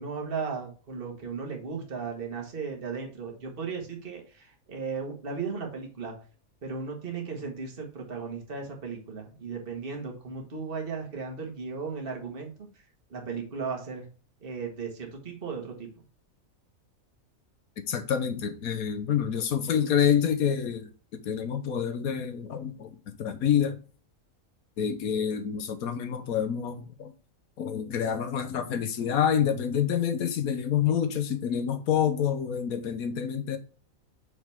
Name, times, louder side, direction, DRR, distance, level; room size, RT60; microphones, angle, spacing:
voice 1, 0.0-6.1 6.6-12.5 13.1-14.1 14.4-15.9, right 5 dB, 40° right, 1.8 m, -36 dB
voice 2, 17.9-23.8 24.8-27.1 27.6-33.6, left 8 dB, 85° left, 1.3 m, -27 dB
6.2 x 5.5 x 3.4 m
omnidirectional pair, 1.5 m